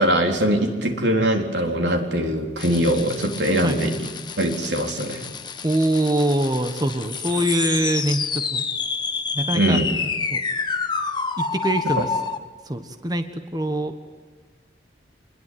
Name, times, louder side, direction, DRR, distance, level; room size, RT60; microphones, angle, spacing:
voice 1, 0.0-4.1 4.4-5.2 9.5-9.9, right 1 dB, 90° right, 3 dB, 3.8 m, -22 dB
sound 1, 2.6-12.4, left 5 dB, 25° left, 1.3 m, -29 dB
voice 2, 5.6-8.6 9.3-9.8 10.3-10.4 11.4-12.1 12.7-13.2 13.5-14.0, right 1 dB, 25° right, 7 dB, 1.4 m, -23 dB
25.5 x 21.0 x 9.4 m, 1.5 s
head